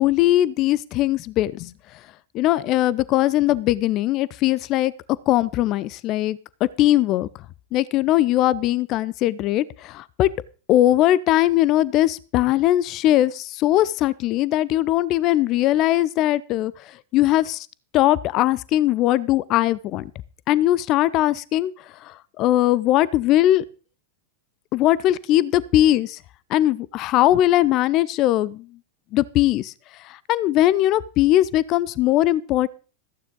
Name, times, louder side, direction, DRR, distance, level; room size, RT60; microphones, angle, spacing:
voice 1, 0.0-1.7 2.3-4.9 5.3-6.4 6.8-7.3 7.7-10.3 10.7-16.7 17.1-17.7 17.9-20.1 20.5-21.7 22.0-23.6 24.7-26.2 26.5-28.7 29.1-29.7 30.0-32.7, left 14 dB, 35° left, 21 dB, 0.5 m, -20 dB
14.5 x 9.5 x 3.9 m, 0.37 s
figure-of-eight pair, 90°, 0 cm